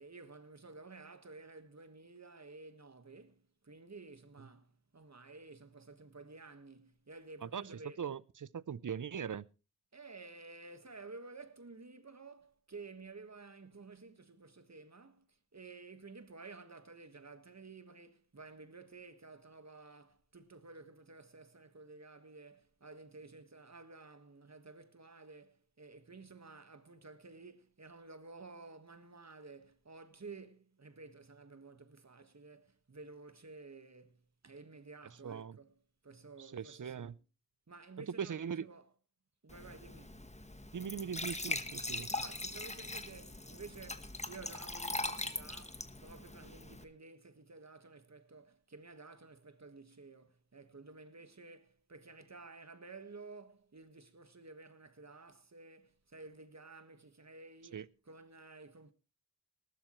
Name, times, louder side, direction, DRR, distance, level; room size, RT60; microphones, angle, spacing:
voice 1, 0.0-8.0 9.9-37.2 37.7-38.9 39.4-40.2 42.1-58.9, right 3 dB, 60° right, 1.5 m, -53 dB
voice 2, 8.0-9.4 35.2-35.6 36.4-37.1 38.2-38.7 40.7-42.1 57.7-57.9, right 7 dB, 80° right, 0.6 m, -40 dB
Glass / Trickle dribble / Fill (with liquid), 39.5-46.8, left 2 dB, 20° left, 1.2 m, -41 dB
19.0 x 12.5 x 3.1 m
wide cardioid pair, 60°, 30 cm